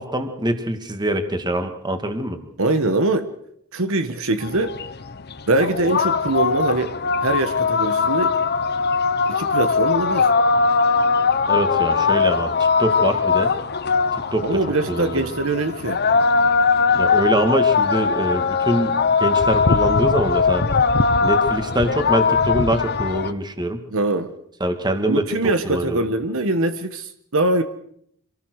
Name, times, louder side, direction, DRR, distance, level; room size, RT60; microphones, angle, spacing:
voice 1, 0.0-2.4 11.5-13.5 14.1-14.5 14.9-15.3 16.9-20.6 21.2-23.8 24.6-25.3 25.6-26.1, right 1 dB, 20° right, 7 dB, 2.2 m, -24 dB
voice 2, 2.6-3.3 3.7-4.8 5.5-6.9 7.2-8.3 9.3-10.3 14.4-16.0 23.9-24.3 25.1-27.6, right 2 dB, 65° right, 9 dB, 1.4 m, -22 dB
sound 1, 4.4-23.3, left 5 dB, 45° left, 1.0 m, -20 dB
26.5 x 18.5 x 6.5 m, 0.70 s
head